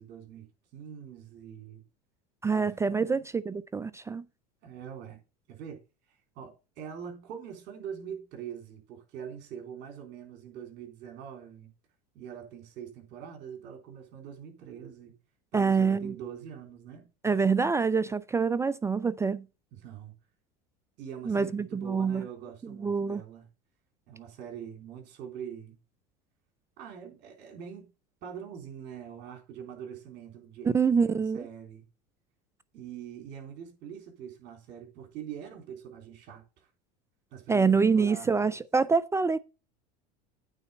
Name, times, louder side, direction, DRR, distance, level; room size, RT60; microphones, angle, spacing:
voice 1, 0.0-1.8 2.5-3.3 4.6-5.2 5.5-5.8 6.4-11.7 12.1-15.2 15.5-17.1 19.7-20.1 21.0-23.5 24.1-25.8 26.8-27.9 28.2-31.9 32.7-36.7 37.3-38.6, right 8 dB, 55° right, 3.7 m, -43 dB
voice 2, 2.4-4.2 15.5-16.1 17.2-19.5 21.3-22.3 22.6-23.2 30.6-31.4 37.5-39.4, right 5 dB, 15° right, 0.4 m, -26 dB
9.0 x 4.1 x 7.0 m
supercardioid pair, 100°, 21 cm